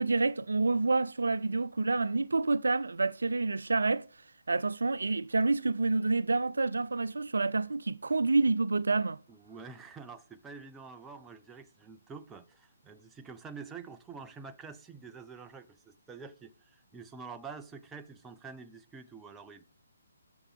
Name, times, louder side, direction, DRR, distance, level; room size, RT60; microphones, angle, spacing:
voice 1, 0.0-9.2, right 3 dB, 80° right, 0.5 m, -28 dB
voice 2, 9.4-19.6, right 5 dB, 10° right, 0.8 m, -47 dB
21.0 x 6.9 x 3.6 m
figure-of-eight pair, 145°, 0 cm